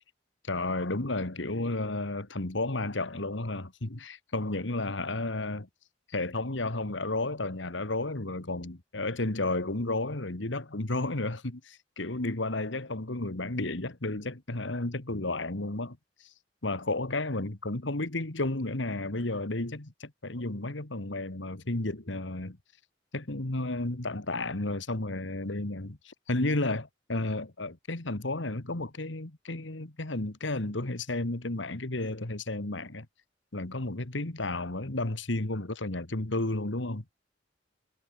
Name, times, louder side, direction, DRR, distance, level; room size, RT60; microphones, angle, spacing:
voice 1, 0.4-5.7 6.1-16.3 16.6-22.6 23.1-33.1 33.5-37.0, left 2 dB, 80° left, 2.0 m, -32 dB
head